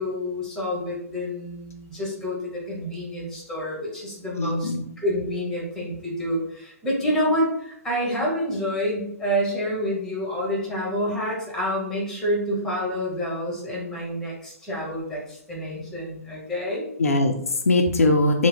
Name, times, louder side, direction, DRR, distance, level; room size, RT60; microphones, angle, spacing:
voice 1, 0.0-4.7 5.0-16.8, equal, 5° left, -4 dB, 1.0 m, -28 dB
voice 2, 4.4-4.8 17.0-18.5, left 2 dB, 65° left, 2 dB, 0.4 m, -21 dB
2.9 x 2.1 x 3.3 m, 0.75 s
figure-of-eight pair, 120°, 8 cm